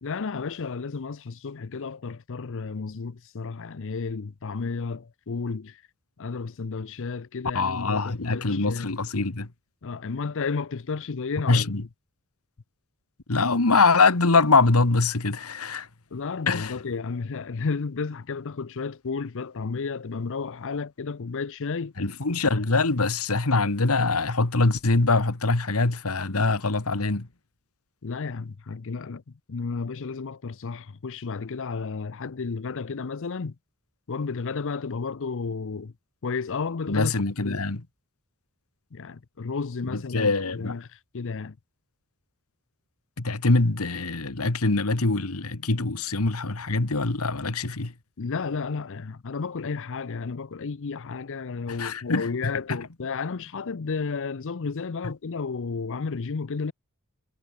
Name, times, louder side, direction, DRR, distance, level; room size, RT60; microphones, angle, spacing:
voice 1, 0.0-5.8 6.2-8.9 9.8-11.7 16.1-21.9 28.0-29.2 29.5-33.6 34.1-35.9 36.2-37.1 37.4-37.6 38.9-41.6 48.2-56.7, left 4 dB, 60° left, 0.6 m, -32 dB
voice 2, 7.5-9.5 11.5-11.8 13.3-15.9 16.5-16.7 22.0-27.3 36.9-37.8 39.8-40.8 43.2-47.9 51.7-52.8 55.0-55.1, left 3 dB, 85° left, 1.7 m, -23 dB
head